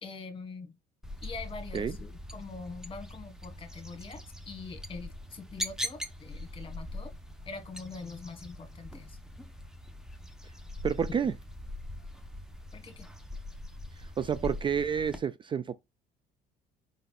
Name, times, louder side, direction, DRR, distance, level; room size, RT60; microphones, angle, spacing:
voice 1, 0.0-0.7 1.2-7.1 7.4-9.2 12.7-13.1, left 4 dB, 30° left, 1.6 m, -44 dB
sound 1, 1.0-15.2, left 1 dB, 5° right, 0.9 m, -42 dB
voice 2, 10.8-11.3 14.2-15.7, right 7 dB, 30° right, 0.4 m, -29 dB
5.1 x 4.0 x 2.4 m
cardioid pair, 110°, 17 cm